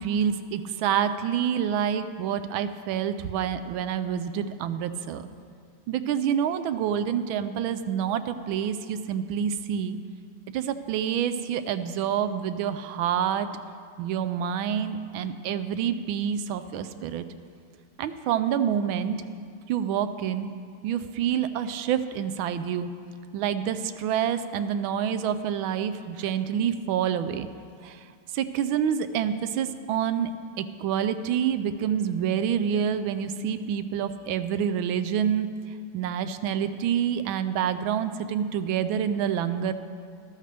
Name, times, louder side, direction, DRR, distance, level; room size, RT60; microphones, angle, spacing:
voice 1, 0.0-5.2 5.9-10.0 10.5-13.5 14.0-17.2 18.0-19.2 19.7-20.5 20.8-22.9 23.3-27.5 27.8-28.0 28.3-30.3 30.6-35.5 35.9-39.7, right 8 dB, 75° right, 11 dB, 1.3 m, -27 dB
14.0 x 13.0 x 3.4 m, 2.3 s
omnidirectional pair, 2.4 m